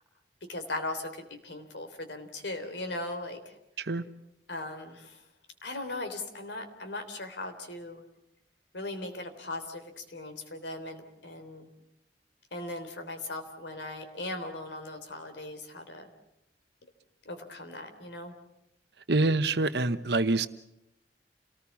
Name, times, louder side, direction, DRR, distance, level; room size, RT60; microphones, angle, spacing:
voice 1, 0.5-3.6 4.5-5.2 5.6-8.0 8.7-11.7 12.5-16.1 17.3-18.3, left 2 dB, 80° left, 7 dB, 3.5 m, -38 dB
voice 2, 19.1-20.5, right 2 dB, 65° right, 11 dB, 1.1 m, -26 dB
29.0 x 19.0 x 7.2 m, 0.86 s
head